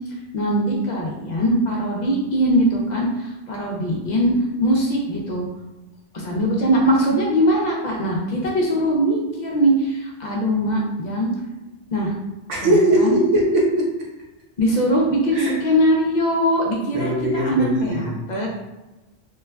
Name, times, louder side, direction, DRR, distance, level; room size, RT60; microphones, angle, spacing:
voice 1, 0.3-4.3 4.6-5.5 6.1-11.3 11.9-12.1 12.6-13.1 14.6-18.5, equal, 55° left, -2 dB, 0.5 m, -21 dB
voice 2, 12.5-14.1 15.3-15.6 16.9-18.2, right 1 dB, 75° right, -3 dB, 1.1 m, -20 dB
3.1 x 2.2 x 2.2 m, 1.1 s
omnidirectional pair, 1.3 m